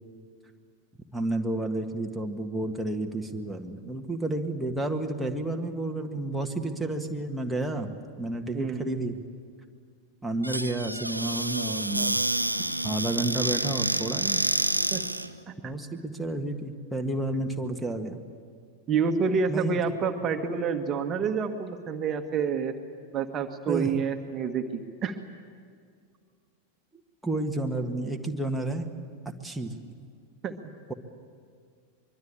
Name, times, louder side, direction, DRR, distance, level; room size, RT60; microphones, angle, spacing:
voice 1, 1.1-9.2 10.2-12.2 12.8-14.4 15.6-18.2 19.5-19.8 23.7-23.9 27.2-28.9 29.4-29.7, right 2 dB, ahead, 1 dB, 1.7 m, -31 dB
voice 2, 8.5-9.0 14.9-15.0 15.5-15.7 18.9-22.7 23.1-25.2 30.4-30.6, right 6 dB, 30° right, 6 dB, 1.6 m, -28 dB
Squeak / Cupboard open or close, 10.4-15.3, right 1 dB, 85° right, 0.9 m, -28 dB
24.0 x 23.0 x 8.8 m, 2.1 s
figure-of-eight pair, 90°, 0 cm